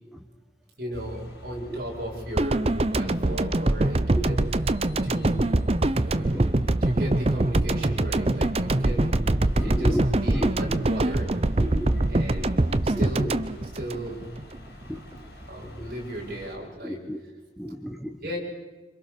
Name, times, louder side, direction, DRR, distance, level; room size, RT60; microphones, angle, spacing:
voice 1, 0.8-4.7 5.0-5.6 6.0-9.2 9.6-11.3 12.1-13.4 13.7-14.3 15.5-17.0 18.2-18.4, right 1 dB, 55° right, -2 dB, 7.0 m, -36 dB
sound 1, 0.9-16.6, left 1 dB, 65° left, 7.0 m, -46 dB
sound 2, 2.4-14.6 14.8-15.0, right 2 dB, 35° right, 0.7 m, -24 dB
voice 2, 6.1-6.5 9.6-10.0 10.3-10.6 11.6-12.0 12.4-12.5 12.9-13.3 14.9-15.0 15.6-15.9 16.8-17.2 17.6-18.2, equal, ahead, 4 dB, 1.1 m, -33 dB
27.0 x 26.5 x 6.8 m, 1.2 s
head